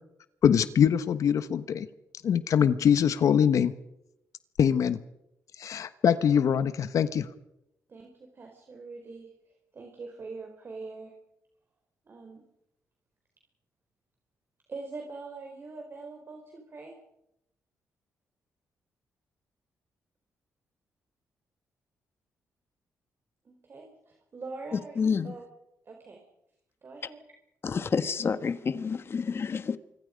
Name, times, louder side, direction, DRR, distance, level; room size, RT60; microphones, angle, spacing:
voice 1, 0.4-1.9 2.2-3.7 4.6-5.0 5.6-7.3, left 8 dB, 70° left, 1.2 m, -23 dB
voice 2, 7.9-9.3 9.7-11.1 12.1-12.4 14.7-16.9 23.4-25.4 25.8-26.2 26.8-27.2, right 3 dB, 40° right, 4.4 m, -43 dB
voice 3, 25.0-25.3 27.6-29.8, left 5 dB, 45° left, 1.4 m, -28 dB
26.0 x 24.5 x 5.2 m
cardioid pair, 100°, 6 cm